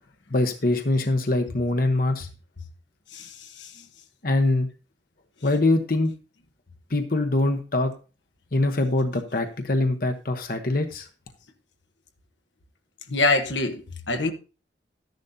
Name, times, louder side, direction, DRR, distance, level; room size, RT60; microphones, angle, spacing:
voice 1, 0.3-2.3 4.2-4.7 5.4-6.1 6.9-7.9 8.5-11.1, left 2 dB, 50° left, 1.0 m, -23 dB
voice 2, 3.1-3.7 13.1-14.3, left 2 dB, 80° left, 1.2 m, -25 dB
13.0 x 10.5 x 2.8 m
head